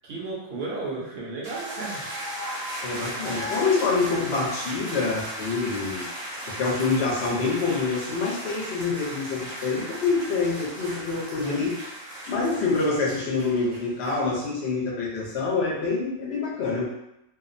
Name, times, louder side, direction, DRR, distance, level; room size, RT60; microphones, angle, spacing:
voice 1, 0.0-2.0 11.4-11.7, right 3 dB, 60° right, -4 dB, 0.8 m, -34 dB
sound 1, 1.4-14.1, equal, 85° right, 1.2 m, -36 dB
voice 2, 2.8-11.9 12.3-16.9, left 4 dB, 60° left, -3 dB, 0.9 m, -26 dB
2.7 x 2.0 x 2.5 m, 0.86 s
omnidirectional pair, 1.3 m